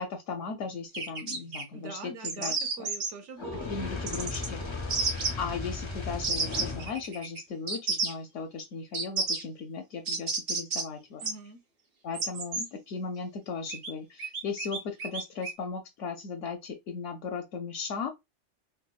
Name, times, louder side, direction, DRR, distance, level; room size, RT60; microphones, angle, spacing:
voice 1, 0.0-2.5 2.8-2.9 3.7-4.7 5.4-11.2 12.0-18.1, left 5 dB, 80° left, 0.9 m, -37 dB
sound 1, 0.9-1.6 2.2-3.1 4.1-4.5 4.9-5.3 6.2-7.4 7.7-8.1 8.9-9.4 10.0-10.8 11.2-11.3 12.1-12.7 13.7-13.9 14.2-15.5, right 4 dB, 55° right, 1.0 m, -31 dB
voice 2, 1.7-3.7 11.2-11.6, right 4 dB, 75° right, 1.1 m, -43 dB
Fire, 3.4-7.0, left 3 dB, 40° left, 0.4 m, -36 dB
4.0 x 2.2 x 2.3 m
omnidirectional pair, 1.3 m